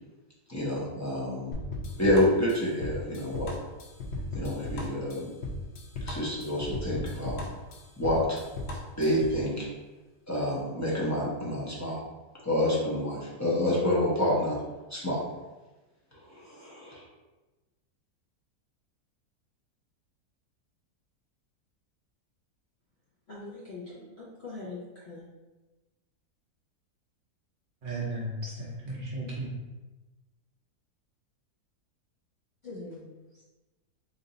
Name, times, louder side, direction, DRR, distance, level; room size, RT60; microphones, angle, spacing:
voice 1, 0.5-1.5 2.0-3.5 4.3-5.3 6.0-7.4 8.0-8.4 9.0-9.7 10.3-12.0 12.4-14.6 14.9-15.2 16.1-17.0, left 1 dB, 20° left, -6 dB, 0.4 m, -28 dB
sound 1, 1.5-9.4, left 2 dB, 70° left, 0.6 m, -36 dB
voice 2, 23.3-25.2 32.6-33.4, left 3 dB, 50° left, -8 dB, 0.9 m, -43 dB
voice 3, 23.9-24.3 27.8-29.6, right 1 dB, 85° right, -4 dB, 0.4 m, -36 dB
3.3 x 2.6 x 3.9 m, 1.1 s
omnidirectional pair, 1.7 m